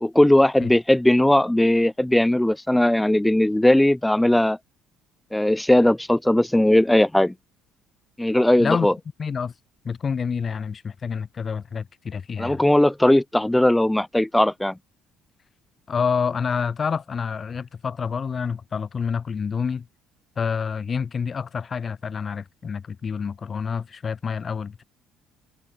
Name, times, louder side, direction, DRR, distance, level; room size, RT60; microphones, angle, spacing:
voice 1, 0.0-4.6 5.3-7.3 8.2-8.9 12.4-14.7, left 1 dB, 5° left, 0.4 m, -18 dB
voice 2, 9.2-9.5 9.8-12.6 15.9-19.9 20.4-24.8, left 6 dB, 35° left, 2.4 m, -28 dB
cardioid pair, 95°, 0 cm